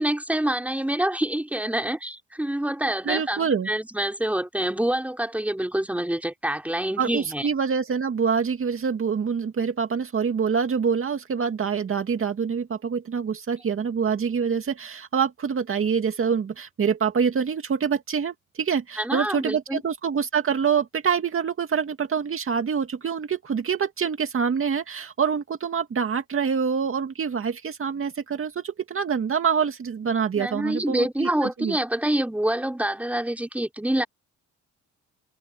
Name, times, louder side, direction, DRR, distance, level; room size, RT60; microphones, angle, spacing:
voice 1, 0.0-7.5 19.0-19.8 30.4-34.0, right 1 dB, 5° right, 3.3 m, -26 dB
voice 2, 3.1-3.7 7.0-31.8, right 6 dB, 45° right, 2.2 m, -26 dB
cardioid pair, 90°, 30 cm